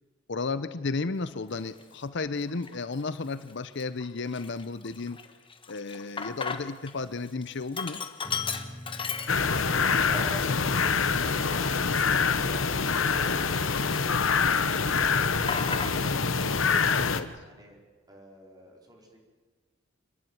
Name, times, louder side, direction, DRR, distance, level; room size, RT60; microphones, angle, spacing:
voice 1, 0.3-5.2 5.7-8.0 17.0-17.3, left 3 dB, 60° left, 13 dB, 0.7 m, -33 dB
Sink (filling or washing), 1.7-1.8 2.5-3.0 3.4-3.5 3.8-6.9 7.2-9.8 10.2-10.3 11.0-13.6 13.9-14.7 14.9-16.3, left 5 dB, 25° left, 1.2 m, -36 dB
voice 2, 5.9-6.2 10.0-15.4 17.4-17.8 18.1-19.2, right 1 dB, 20° right, 0 dB, 4.2 m, -48 dB
sound 1, 8.2-15.9, equal, 5° right, 2.2 m, -48 dB
sound 2, 9.3-17.2, left 5 dB, 90° left, 1.1 m, -25 dB
27.5 x 11.0 x 9.6 m, 1.4 s
head